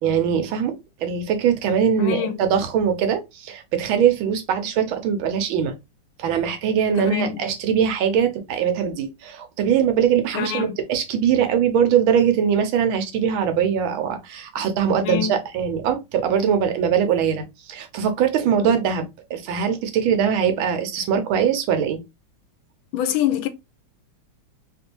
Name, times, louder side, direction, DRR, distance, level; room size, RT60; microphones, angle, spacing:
voice 1, 0.0-0.7 1.0-5.7 6.2-22.0, right 8 dB, 80° right, 1.5 m, -21 dB
voice 2, 2.0-2.4 7.0-7.4 10.3-10.8 15.0-15.3 18.6-18.8 22.9-23.5, left 9 dB, 80° left, 1.3 m, -25 dB
3.5 x 2.6 x 2.8 m
omnidirectional pair, 2.2 m